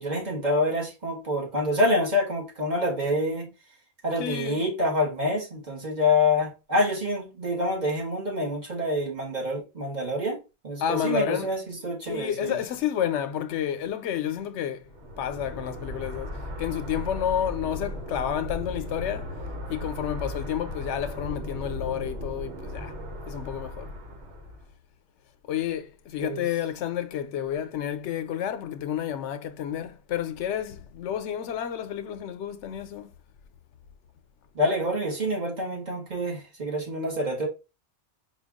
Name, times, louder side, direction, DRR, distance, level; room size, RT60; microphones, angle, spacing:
voice 1, 0.0-3.5 4.0-12.6 26.2-26.4 34.5-37.5, left 1 dB, 40° right, 1.4 m, -27 dB
voice 2, 4.2-4.6 10.8-11.5 12.0-14.9 15.2-19.3 19.7-23.0 23.3-23.9 25.5-33.1, left 9 dB, 90° left, 0.9 m, -30 dB
sound 1, 14.9-24.7, left 1 dB, 80° right, 1.3 m, -36 dB
4.5 x 2.3 x 3.5 m
omnidirectional pair, 1.2 m